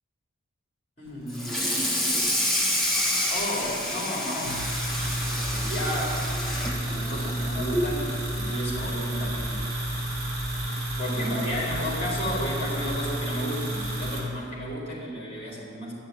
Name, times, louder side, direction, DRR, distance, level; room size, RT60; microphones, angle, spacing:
voice 1, 1.0-1.5 3.3-4.6 5.1-6.3 6.8-9.6 10.0-10.3 11.0-15.9, equal, 30° left, -5 dB, 4.0 m, -33 dB
Water tap faucet / Sink (filling or washing), 1.3-8.0 8.4-8.6 9.0-9.1 9.5-9.6 10.7-10.8 11.2-11.5, left 1 dB, ahead, 1.7 m, -28 dB
sound 1, 4.4-14.2, right 1 dB, 45° right, 3.6 m, -31 dB
12.0 x 6.7 x 9.4 m, 2.4 s
head